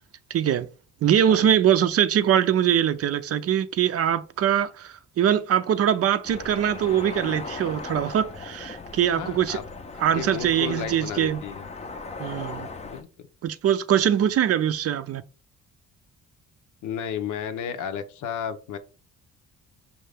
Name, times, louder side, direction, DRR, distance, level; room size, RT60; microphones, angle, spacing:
voice 1, 0.3-0.7 1.0-9.6 10.0-11.4 12.2-12.7 13.4-15.2, right 9 dB, 55° right, 0.5 m, -22 dB
sound 1, 6.2-13.0, left 3 dB, 20° left, 0.5 m, -38 dB
voice 2, 9.2-9.6 10.1-11.7 12.8-13.1 16.8-18.8, left 8 dB, 85° left, 0.7 m, -33 dB
5.5 x 2.5 x 3.4 m
cardioid pair, 90°, 30 cm